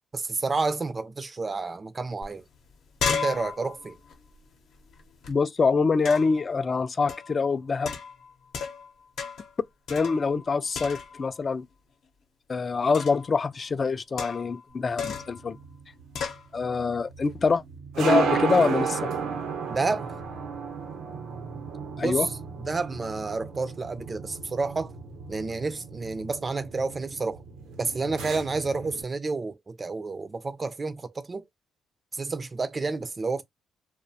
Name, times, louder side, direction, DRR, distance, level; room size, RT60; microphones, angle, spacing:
voice 1, 0.1-2.4 3.1-4.0 19.7-20.1 22.0-22.3 22.6-24.9 25.3-27.4 27.8-31.4 32.1-33.4, right 3 dB, 30° right, 0.4 m, -30 dB
sound 1, 2.2-2.3 2.6-5.3 6.0-6.4 7.1-7.4 7.8-8.9 9.2-9.5 9.9-10.5 10.7-11.3 12.9-13.3 14.2-14.6 15.0-15.4 16.1-16.4, left 6 dB, 70° left, 0.7 m, -34 dB
voice 2, 5.3-8.0 9.9-11.7 12.5-15.6 16.5-17.6 18.0-19.1 22.0-22.3, left 4 dB, 35° left, 0.3 m, -25 dB
sound 2, 15.2-29.0, right 6 dB, 85° right, 0.7 m, -33 dB
2.5 x 2.0 x 2.7 m
cardioid pair, 90°, 0 cm